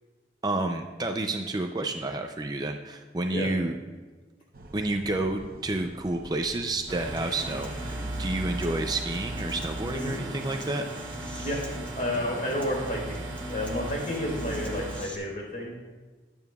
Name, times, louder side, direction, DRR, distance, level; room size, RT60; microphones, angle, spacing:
voice 1, 0.4-3.7 4.7-10.8, right 2 dB, 20° right, 4 dB, 0.5 m, -30 dB
sound 1, 4.5-10.1, right 1 dB, 50° right, 0.9 m, -45 dB
sound 2, 6.9-15.0, right 2 dB, 85° right, 1.6 m, -37 dB
Human voice / Acoustic guitar, 7.2-15.1, left 1 dB, 10° left, 1.1 m, -42 dB
voice 2, 12.0-13.2 13.5-15.7, left 1 dB, 45° left, -2 dB, 4.1 m, -31 dB
21.5 x 8.8 x 2.4 m, 1.3 s
head